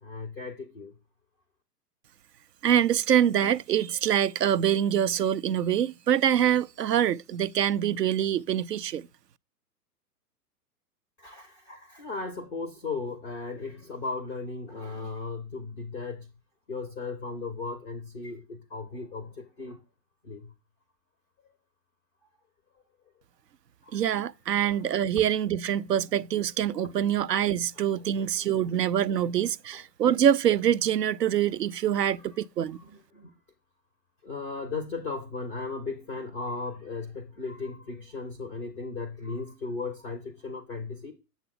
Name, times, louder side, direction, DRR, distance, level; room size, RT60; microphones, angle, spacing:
voice 1, 0.0-0.9 11.2-16.3 16.7-19.8 20.2-20.5 23.8-24.0 24.6-24.8 26.8-27.2 27.9-28.7 29.7-29.8 32.1-32.2 32.6-33.4 34.2-41.1, left 4 dB, 5° left, 0.3 m, -37 dB
voice 2, 2.6-9.1 23.9-32.8, right 10 dB, 85° right, 0.6 m, -25 dB
7.9 x 7.1 x 3.9 m
figure-of-eight pair, 110°, 48 cm